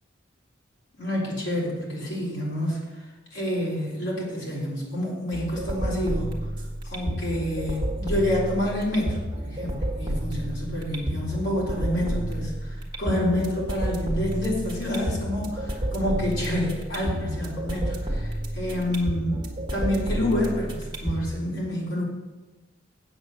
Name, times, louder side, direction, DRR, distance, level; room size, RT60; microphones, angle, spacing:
voice 1, 1.0-2.8 3.3-6.3 6.8-12.5 13.0-22.0, left 1 dB, 60° left, -5 dB, 4.0 m, -28 dB
sound 1, 5.3-21.3, equal, 20° right, 1.6 m, -31 dB
8.1 x 8.0 x 6.7 m, 1.2 s
head